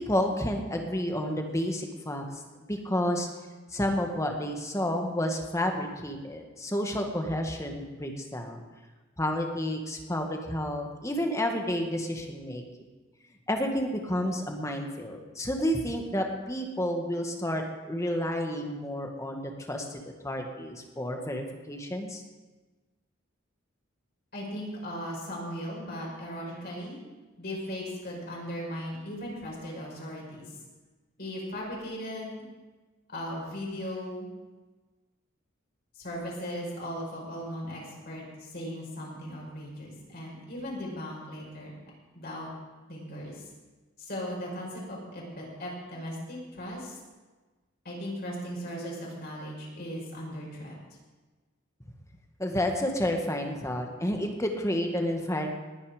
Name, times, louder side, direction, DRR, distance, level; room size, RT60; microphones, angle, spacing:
voice 1, 0.0-2.4 2.7-3.3 3.7-8.6 9.2-12.6 13.5-22.2 52.4-55.5, left 1 dB, 15° left, 3 dB, 1.7 m, -30 dB
voice 2, 24.3-27.0 27.4-30.6 31.2-32.5 33.1-34.3 35.9-41.7 42.1-42.5 42.9-43.5 44.0-47.0 47.8-50.7, equal, 50° left, -3 dB, 5.4 m, -37 dB
19.5 x 9.8 x 5.1 m, 1.3 s
head